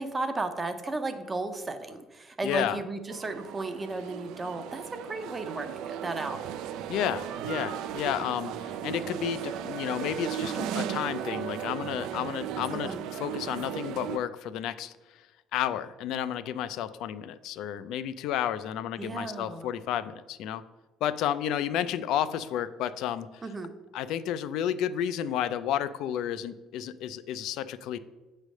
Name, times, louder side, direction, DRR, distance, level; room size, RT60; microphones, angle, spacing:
voice 1, 0.0-6.4 12.7-13.0 19.0-19.7 23.4-23.7, right 2 dB, 15° right, 9 dB, 0.5 m, -34 dB
voice 2, 2.4-2.8 6.9-12.9 13.2-14.9 15.5-20.6 21.0-23.3 23.9-28.0, left 10 dB, 70° left, 13 dB, 0.3 m, -31 dB
sound 1, 3.1-14.2, right 9 dB, 75° right, 0.4 m, -36 dB
8.3 x 3.2 x 6.3 m, 1.1 s
cardioid pair, 170°, 0 cm